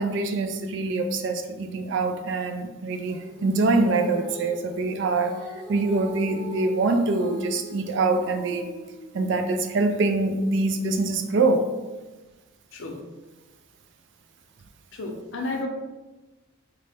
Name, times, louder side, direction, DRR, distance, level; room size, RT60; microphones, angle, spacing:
voice 1, 0.0-5.3 5.7-8.7 9.1-11.6, right 3 dB, 55° right, 6 dB, 0.3 m, -24 dB
Female singing, 3.0-9.5, left 1 dB, 40° right, 1.1 m, -43 dB
voice 2, 14.9-15.7, left 2 dB, 65° left, 2 dB, 0.5 m, -32 dB
3.8 x 2.1 x 3.3 m, 1.2 s
head